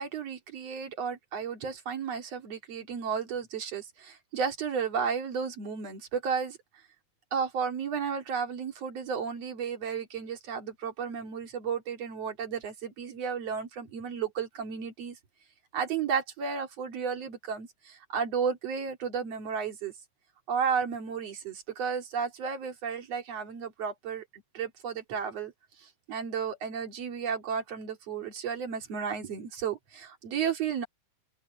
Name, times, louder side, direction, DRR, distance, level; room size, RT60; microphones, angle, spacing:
voice 1, 0.0-6.6 7.3-15.2 15.7-19.9 20.5-24.2 24.5-25.5 25.8-30.9, right 6 dB, 55° right, 3.4 m, -33 dB
open air
omnidirectional pair, 3.7 m